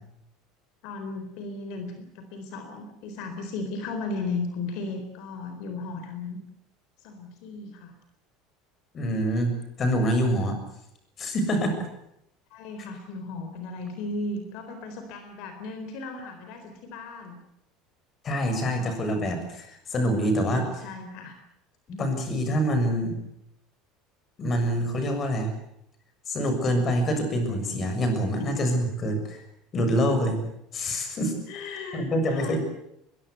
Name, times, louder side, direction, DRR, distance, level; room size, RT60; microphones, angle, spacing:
voice 1, 0.8-6.4 7.0-7.9 12.5-17.4 18.8-18.9 20.1-21.4 28.4-28.6 31.5-32.6, left 3 dB, 60° left, 7 dB, 4.1 m, -36 dB
voice 2, 8.9-10.6 11.2-11.8 18.2-20.9 21.9-23.2 24.4-25.5 26.3-29.4 29.7-30.4 30.7-31.3 31.9-32.6, equal, 25° left, 7 dB, 6.8 m, -26 dB
22.5 x 22.5 x 8.1 m, 0.80 s
cardioid pair, 155°, 0 cm